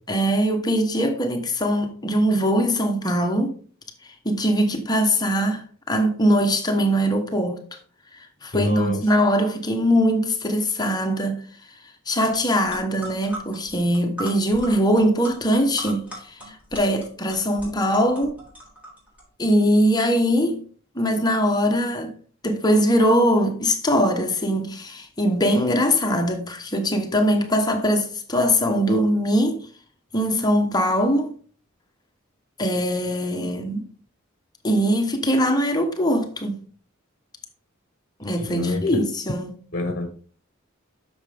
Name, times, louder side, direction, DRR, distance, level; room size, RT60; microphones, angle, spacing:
voice 1, 0.1-3.6 4.2-7.6 8.4-11.4 12.1-18.4 19.4-20.6 20.9-22.1 22.4-29.7 30.1-31.3 32.6-33.8 34.6-36.6 38.2-39.6, equal, 20° left, 1.1 m, -21 dB
voice 2, 8.5-9.0 38.2-39.1 39.7-40.1, left 2 dB, 45° left, 1.3 m, -26 dB
sound 1, 12.3-12.4 12.7-19.2, equal, 5° right, 3.9 m, -39 dB
8.9 x 6.6 x 3.4 m
head